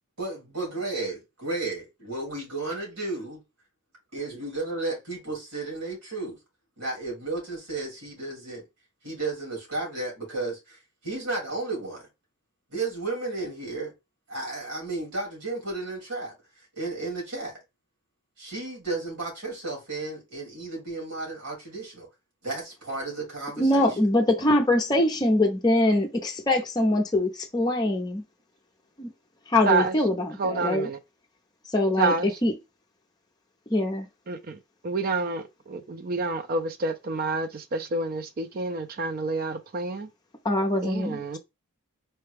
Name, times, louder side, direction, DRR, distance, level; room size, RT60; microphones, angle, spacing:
voice 1, 0.2-3.4 4.1-6.4 6.8-8.6 9.0-12.1 12.7-13.9 14.3-16.3 16.8-17.6 18.4-22.1 22.4-23.9, right 3 dB, 85° right, 2.5 m, -33 dB
voice 2, 23.6-28.2 29.0-29.1 29.5-30.9 31.7-32.1 32.4-32.5 33.7-34.1 40.4-41.4, left 1 dB, 20° left, 0.6 m, -23 dB
voice 3, 29.7-30.0 30.4-31.0 32.0-32.4 34.3-40.1 40.8-41.4, right 3 dB, 40° right, 0.4 m, -28 dB
4.3 x 2.3 x 3.3 m
head